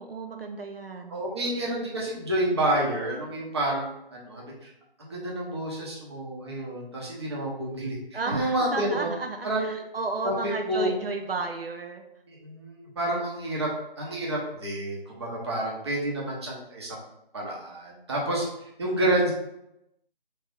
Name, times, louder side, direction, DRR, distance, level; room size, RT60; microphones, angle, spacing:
voice 1, 0.0-1.2 8.1-12.0, right 3 dB, 75° right, 4 dB, 0.7 m, -33 dB
voice 2, 1.1-4.7 5.0-8.0 8.3-9.1 9.4-9.8 10.2-10.9 12.3-13.7 14.0-17.0 17.3-18.5 18.8-19.3, right 1 dB, 25° right, -3 dB, 1.0 m, -29 dB
3.4 x 3.4 x 4.5 m, 0.84 s
figure-of-eight pair, 160°, 29 cm